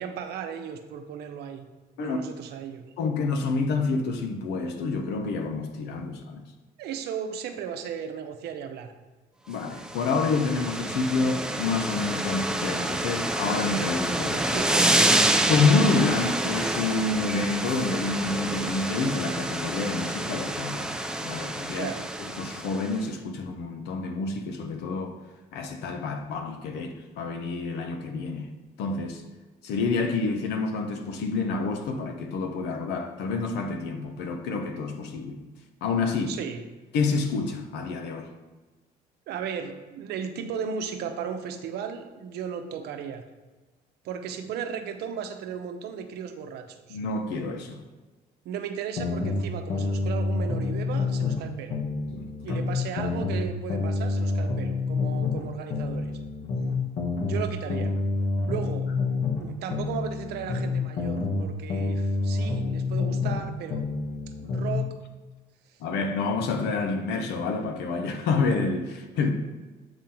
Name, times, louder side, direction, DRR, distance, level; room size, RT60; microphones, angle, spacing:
voice 1, 0.0-1.7 2.0-2.9 6.1-6.2 6.8-8.9 14.4-15.5 21.8-22.0 36.3-36.7 39.3-43.2 44.0-47.0 48.4-51.8 52.4-56.1 57.2-57.9 58.5-58.9 59.4-63.9 64.4-64.9 65.7-65.8, right 7 dB, 75° right, 0.8 m, -35 dB
voice 2, 3.0-6.4 9.5-14.6 15.5-20.9 21.2-21.9 22.3-25.2 25.5-28.5 28.8-29.2 29.6-35.4 35.8-36.4 36.9-38.3 46.9-47.8 52.1-52.6 65.8-69.3, left 4 dB, 80° left, 0.9 m, -28 dB
sound 1, 9.7-23.0, right 1 dB, 5° right, 0.4 m, -28 dB
sound 2, 49.0-51.4 51.7-55.4 55.7-59.4 59.7-63.4 63.7-64.8, left 3 dB, 60° left, 1.5 m, -28 dB
8.0 x 3.8 x 4.4 m
cardioid pair, 110°, 17 cm